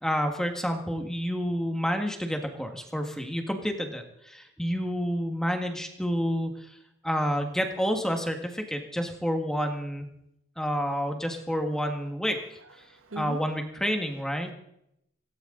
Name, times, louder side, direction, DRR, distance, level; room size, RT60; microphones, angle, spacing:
voice 1, 0.0-6.7 7.0-10.1 10.6-12.4 13.2-14.5, equal, 5° left, 4 dB, 1.7 m, -29 dB
voice 2, 11.5-11.8 12.3-13.5 14.0-14.2 14.5-14.6, right 2 dB, 70° right, 9 dB, 1.2 m, -43 dB
17.5 x 17.0 x 3.9 m, 0.80 s
head